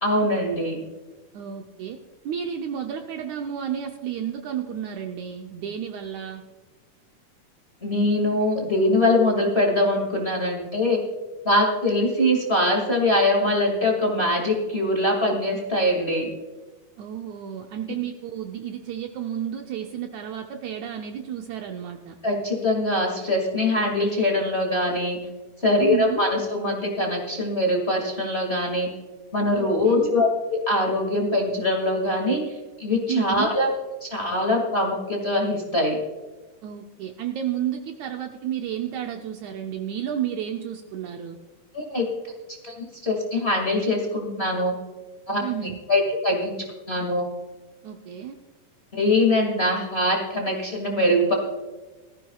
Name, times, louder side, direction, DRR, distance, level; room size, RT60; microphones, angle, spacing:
voice 1, 0.0-0.8 7.8-11.0 11.4-16.3 22.2-25.2 25.6-28.9 29.3-33.7 34.0-36.0 41.7-42.0 42.6-42.7 43.0-44.7 45.3-45.4 45.9-46.6 46.9-47.2 48.9-51.3, left 1 dB, 25° left, 0 dB, 1.6 m, -23 dB
voice 2, 1.3-2.0 2.2-6.4 17.0-22.2 25.8-26.2 29.5-30.1 33.1-33.5 36.6-41.4 45.4-45.8 47.8-48.4, right 9 dB, 75° right, 4 dB, 1.8 m, -31 dB
19.0 x 14.5 x 2.3 m, 1.3 s
omnidirectional pair, 3.9 m